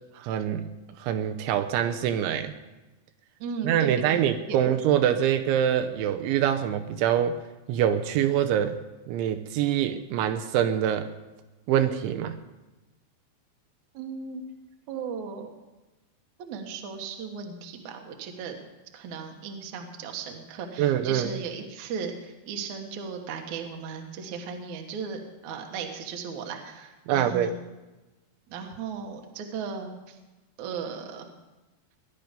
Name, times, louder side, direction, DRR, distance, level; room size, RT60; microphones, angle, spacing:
voice 1, 0.2-0.7 1.0-2.5 3.6-7.4 7.7-8.8 9.1-11.1 11.7-12.4 20.8-21.3 27.1-27.5, right 10 dB, 80° right, 7 dB, 3.0 m, -25 dB
voice 2, 3.4-4.2 4.5-4.6 13.9-14.4 14.9-15.5 16.4-18.6 18.9-27.5 28.5-30.2 30.6-31.3, right 6 dB, 65° right, 3 dB, 1.9 m, -36 dB
19.5 x 10.5 x 5.2 m, 1.1 s
omnidirectional pair, 5.5 m